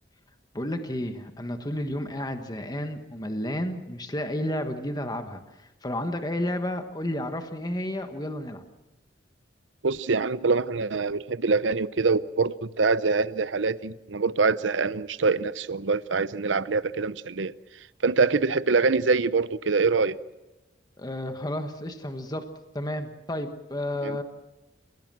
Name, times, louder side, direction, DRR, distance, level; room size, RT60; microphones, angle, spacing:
voice 1, 0.5-8.6 21.0-22.4 22.7-24.2, left 1 dB, 20° left, 1.4 m, -31 dB
voice 2, 9.8-17.5 18.0-20.1 24.0-24.2, right 4 dB, 85° right, 0.7 m, -24 dB
29.5 x 16.5 x 7.6 m
head